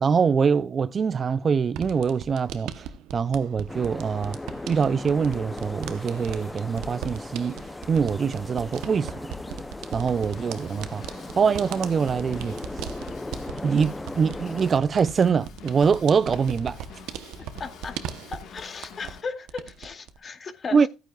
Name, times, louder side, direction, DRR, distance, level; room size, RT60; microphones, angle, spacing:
voice 1, 0.0-2.9 3.1-4.4 4.7-7.5 7.9-9.1 9.9-11.0 11.4-12.6 13.6-16.9 20.7-20.9, right 6 dB, 40° right, 0.4 m, -23 dB
sound 1, 1.7-19.2 19.5-20.2, right 8 dB, 85° right, 0.8 m, -39 dB
sound 2, 3.7-14.7, left 2 dB, 15° left, 0.6 m, -38 dB
Drum kit / Drum, 10.0-19.2, left 6 dB, 70° left, 1.5 m, -47 dB
voice 2, 17.6-18.0 18.3-20.9, left 4 dB, 40° left, 2.3 m, -36 dB
14.5 x 9.1 x 2.3 m
cardioid pair, 85°, 0 cm